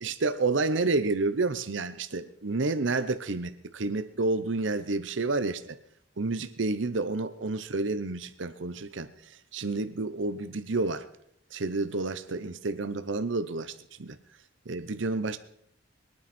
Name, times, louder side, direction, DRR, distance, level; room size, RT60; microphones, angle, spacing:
voice 1, 0.0-5.8 6.2-9.1 9.5-11.1 11.5-13.7 14.0-14.2 14.7-15.4, right 3 dB, 75° right, 11 dB, 0.8 m, -29 dB
22.5 x 9.5 x 4.3 m, 0.70 s
head